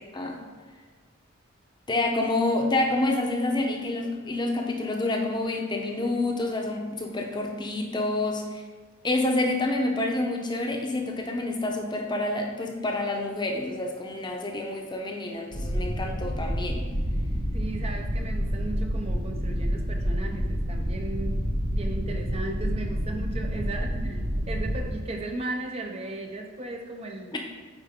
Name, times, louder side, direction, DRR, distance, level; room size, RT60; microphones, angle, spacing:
voice 1, 1.9-8.6 9.0-16.8 27.3-27.4, left 2 dB, 20° left, 2 dB, 0.7 m, -28 dB
sound 1, 15.5-24.9, equal, 55° right, 1.5 m, -28 dB
voice 2, 17.5-21.4 21.7-27.3, right 2 dB, 30° right, 3 dB, 0.5 m, -36 dB
8.9 x 4.6 x 3.6 m, 1.5 s
head